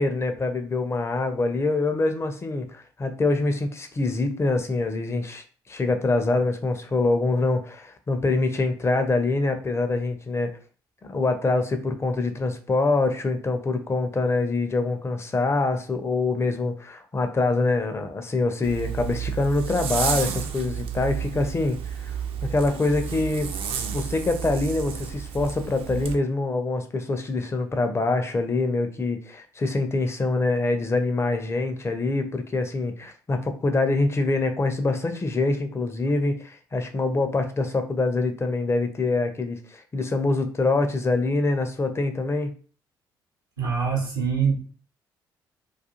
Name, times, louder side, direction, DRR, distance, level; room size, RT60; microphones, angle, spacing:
voice 1, 0.0-10.6 11.0-21.8 22.0-22.2 22.5-23.5 23.9-42.5, left 3 dB, 25° left, 7 dB, 0.5 m, -25 dB
Zipper (clothing), 18.6-26.2, right 8 dB, 55° right, 0.4 m, -31 dB
voice 2, 43.6-44.6, right 6 dB, 85° right, -1 dB, 0.7 m, -24 dB
2.4 x 2.3 x 2.8 m, 0.40 s
figure-of-eight pair, 45°, 11 cm